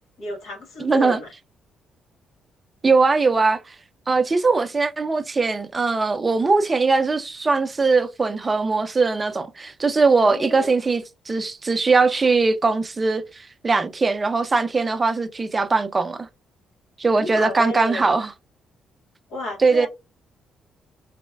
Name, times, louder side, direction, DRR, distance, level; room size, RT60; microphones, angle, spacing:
voice 1, 0.2-1.3 10.2-10.7 17.1-18.1 19.3-19.9, left 2 dB, 90° left, 1.4 m, -32 dB
voice 2, 0.8-1.2 2.8-3.7 4.1-16.3 17.0-18.3 19.6-19.9, right 4 dB, 25° right, 0.5 m, -20 dB
4.0 x 2.1 x 2.2 m
cardioid pair, 90°, 0 cm